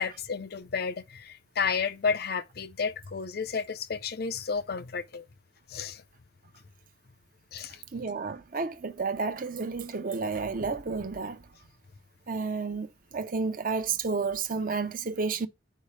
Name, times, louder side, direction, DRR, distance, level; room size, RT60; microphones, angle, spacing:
voice 1, 0.0-5.3 5.7-6.0 7.5-7.8, left 5 dB, 55° left, 0.5 m, -32 dB
voice 2, 7.9-11.4 12.3-15.5, right 4 dB, 45° right, 0.7 m, -31 dB
8.5 x 4.9 x 3.2 m
head